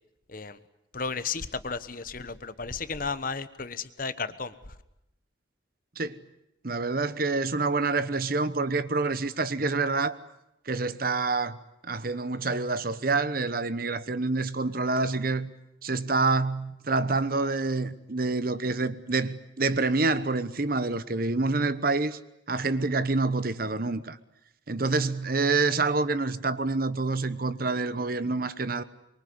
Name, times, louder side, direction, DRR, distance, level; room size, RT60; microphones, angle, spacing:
voice 1, 0.9-4.5, left 4 dB, 45° left, 1.2 m, -33 dB
voice 2, 6.6-10.2 10.7-11.6 11.8-15.5 15.8-22.2 22.5-24.2 24.7-28.8, right 3 dB, 50° right, 1.1 m, -27 dB
25.0 x 23.0 x 9.6 m
head